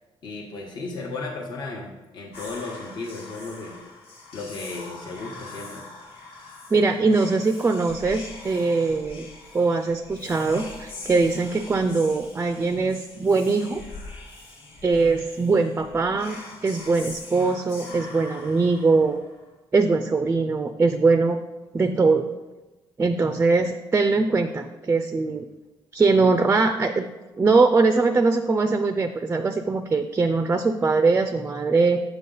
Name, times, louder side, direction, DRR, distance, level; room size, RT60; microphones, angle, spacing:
voice 1, 0.2-3.8 4.3-5.8, left 3 dB, 50° left, -1 dB, 1.1 m, -35 dB
Whispering, 2.3-19.5, left 3 dB, 85° left, 1.7 m, -43 dB
voice 2, 6.7-9.3 9.5-13.8 14.8-19.2 19.7-21.4 21.7-22.2 23.0-25.4 25.9-27.1 27.4-32.0, right 3 dB, 20° right, 8 dB, 0.4 m, -21 dB
8.0 x 5.3 x 3.9 m, 1.1 s
cardioid pair, 125°, 10 cm